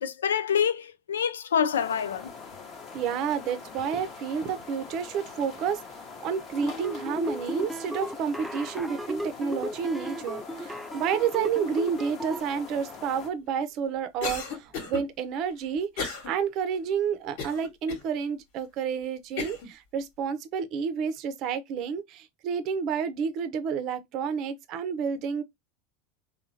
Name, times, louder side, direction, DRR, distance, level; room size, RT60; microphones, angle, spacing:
voice 1, 0.0-2.3, left 8 dB, 80° left, 0.4 m, -26 dB
sound 1, 1.7-13.3, left 5 dB, 40° left, 1.0 m, -44 dB
voice 2, 2.9-5.8 6.2-25.4, right 7 dB, 50° right, 0.6 m, -30 dB
sound 2, 6.5-12.4, equal, 5° right, 0.3 m, -35 dB
Cough, 14.2-15.0 16.0-16.3 16.7-16.8 17.4-18.0 18.6-18.7 19.4-19.7, left 4 dB, 65° left, 1.3 m, -33 dB
3.5 x 2.2 x 2.7 m
hypercardioid pair, 85°, 0 cm